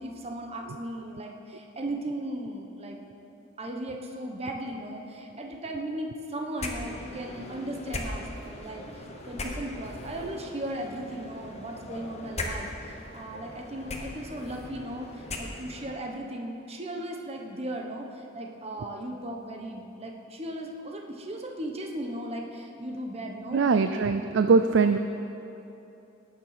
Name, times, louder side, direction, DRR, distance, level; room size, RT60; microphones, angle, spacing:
voice 1, 0.0-3.0 3.6-24.3, right 1 dB, 30° right, 1 dB, 1.1 m, -37 dB
sound 1, 6.6-15.9, left 2 dB, 35° left, 1.2 m, -39 dB
voice 2, 23.5-25.0, right 4 dB, 65° right, 9 dB, 0.4 m, -22 dB
18.5 x 7.0 x 5.8 m, 2.9 s
head